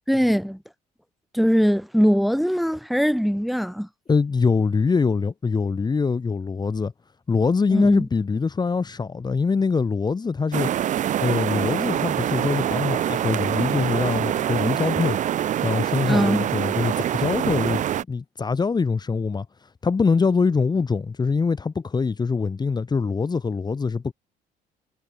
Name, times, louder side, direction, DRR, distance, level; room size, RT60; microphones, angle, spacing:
voice 1, 0.1-0.6 1.3-3.9 7.7-8.1 16.0-16.4, equal, ahead, 2.2 m, -21 dB
voice 2, 4.1-6.9 7.3-10.7 11.2-15.2 15.6-17.8 18.1-19.5 19.8-24.1, left 4 dB, 25° left, 1.7 m, -23 dB
sound 1, 10.5-18.0, right 11 dB, 45° right, 0.6 m, -25 dB
cardioid pair, 110°, 17 cm